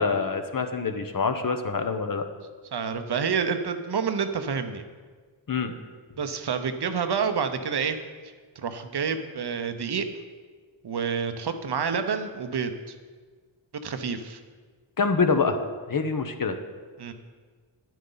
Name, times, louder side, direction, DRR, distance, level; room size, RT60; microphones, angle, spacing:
voice 1, 0.0-2.2 5.5-5.7 15.0-15.6 15.9-16.6, left 4 dB, 45° left, 7 dB, 1.0 m, -25 dB
voice 2, 2.7-4.8 6.2-8.0 8.6-10.1 10.8-12.9 13.8-14.4 17.0-17.1, right 6 dB, 55° right, 8 dB, 0.9 m, -28 dB
10.0 x 9.1 x 4.0 m, 1.5 s
cardioid pair, 70°, 48 cm